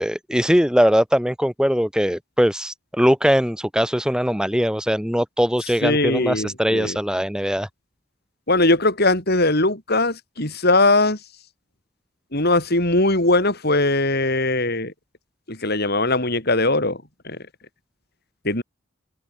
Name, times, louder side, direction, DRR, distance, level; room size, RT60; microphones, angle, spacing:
voice 1, 0.0-7.7, equal, 5° right, 4.5 m, -21 dB
voice 2, 5.8-7.0 8.5-11.2 12.3-14.9 15.5-17.0 17.2-17.4 18.4-18.6, left 2 dB, 50° left, 7.3 m, -20 dB
open air
head